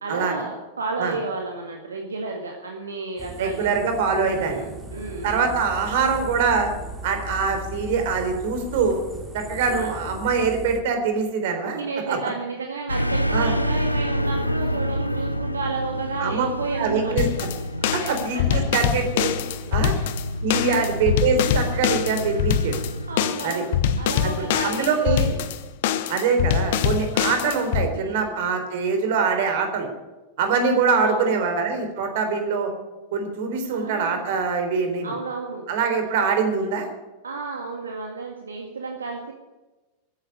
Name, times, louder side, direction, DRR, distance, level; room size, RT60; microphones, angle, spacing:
voice 1, 0.0-3.7 4.2-5.5 9.6-9.9 11.7-17.2 18.0-18.7 19.9-20.1 20.5-20.9 22.9-23.7 24.0-25.3 27.9-28.4 31.0-31.4 33.7-34.3 35.0-35.6 37.2-39.3, right 4 dB, 70° right, 2 dB, 1.9 m, -32 dB
sound 1, 3.2-10.8, right 1 dB, 15° right, 3.7 m, -37 dB
voice 2, 3.4-4.6 5.2-6.7 7.0-9.0 9.3-11.8 12.1-12.2 13.3-13.5 16.2-16.5 16.8-17.5 17.9-19.3 19.7-19.9 20.4-22.7 23.4-23.6 24.2-25.3 26.1-29.9 30.4-32.7 33.1-35.1 35.7-36.9, right 5 dB, 50° right, 6 dB, 3.8 m, -23 dB
sound 2, 12.9-23.3, equal, 85° left, 0.8 m, -28 dB
sound 3, 17.2-27.9, left 9 dB, 55° left, 1.2 m, -24 dB
14.5 x 10.0 x 9.7 m, 1.1 s
figure-of-eight pair, 90°, 0 cm